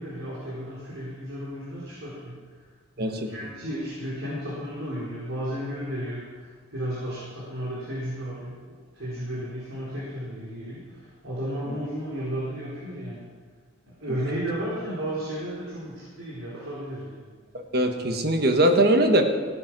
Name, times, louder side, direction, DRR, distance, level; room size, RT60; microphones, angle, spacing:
voice 1, 0.0-2.4 3.0-8.6 8.9-13.3 13.8-17.2, equal, 90° right, -8 dB, 4.2 m, -33 dB
voice 2, 3.0-3.3 17.5-19.2, right 1 dB, 50° right, 5 dB, 1.4 m, -21 dB
16.5 x 9.8 x 6.1 m, 1.6 s
head